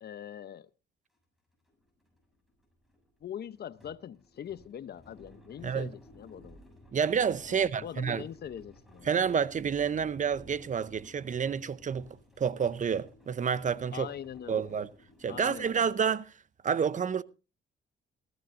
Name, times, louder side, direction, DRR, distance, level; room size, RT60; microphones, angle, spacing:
voice 1, 0.0-0.7 3.2-6.6 7.5-9.2 13.9-14.8 15.3-16.0, left 9 dB, 55° left, 0.8 m, -43 dB
sound 1, 1.1-1.2 1.5-16.3, equal, ahead, 7.0 m, -56 dB
voice 2, 6.9-8.2 9.1-12.1 12.4-14.1 14.5-14.9 15.2-16.3 16.6-17.2, right 7 dB, 40° right, 0.7 m, -29 dB
18.5 x 14.5 x 2.6 m
cardioid pair, 90°, 20 cm